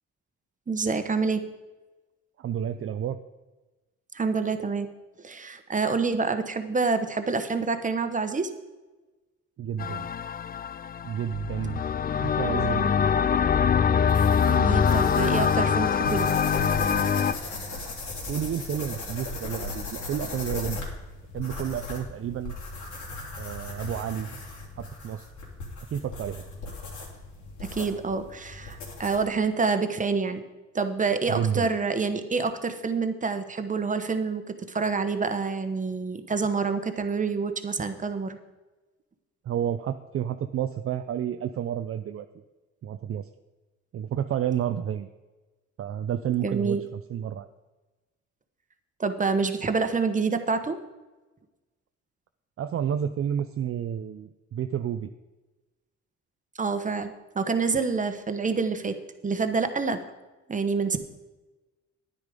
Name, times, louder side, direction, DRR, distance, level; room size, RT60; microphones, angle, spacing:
voice 1, 0.7-1.5 4.1-4.9 5.2-8.5 14.5-16.3 27.6-30.4 30.7-38.4 46.4-46.8 49.0-50.8 56.5-59.0 59.2-60.0 60.5-61.0, right 4 dB, 25° right, 8 dB, 1.1 m, -27 dB
voice 2, 2.4-3.2 9.6-10.1 11.0-11.8 12.2-12.9 18.3-20.9 21.3-22.5 23.4-24.3 24.8-25.3 25.9-26.4 31.3-31.7 39.4-42.3 42.8-43.3 43.9-45.1 45.8-47.5 52.6-55.1, right 9 dB, 45° right, 8 dB, 0.6 m, -30 dB
sound 1, 9.8-17.3, left 7 dB, 30° left, 0.4 m, -24 dB
sound 2, 14.1-29.3, left 2 dB, 75° left, 3.5 m, -37 dB
10.0 x 9.8 x 5.2 m, 1.2 s
cardioid pair, 90°, 30 cm